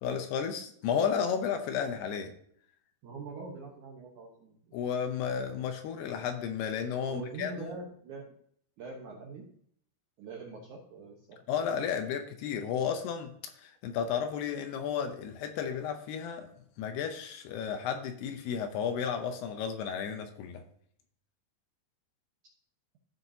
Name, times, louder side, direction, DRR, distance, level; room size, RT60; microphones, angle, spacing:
voice 1, 0.0-2.3 4.7-7.7 11.5-13.3 13.6-16.5 16.8-20.6, left 7 dB, 75° left, 7 dB, 2.6 m, -33 dB
voice 2, 3.0-4.8 7.1-8.4 8.8-9.5 10.2-11.4, right 3 dB, 75° right, -1 dB, 1.8 m, -43 dB
14.5 x 5.9 x 2.7 m, 0.64 s
omnidirectional pair, 5.0 m